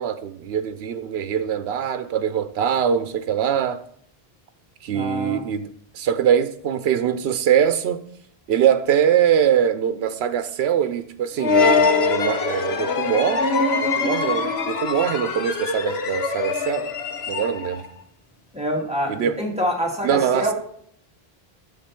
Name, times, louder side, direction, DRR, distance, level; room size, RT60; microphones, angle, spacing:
voice 1, 0.0-3.8 4.8-8.0 8.5-16.9 17.3-17.8 19.1-19.4 20.0-20.5, right 9 dB, 85° right, 0.9 m, -23 dB
voice 2, 4.9-5.4 18.5-20.5, equal, 5° right, 2.1 m, -26 dB
sound 1, 11.4-17.9, left 4 dB, 80° left, 1.2 m, -23 dB
10.0 x 7.4 x 4.3 m
omnidirectional pair, 1.0 m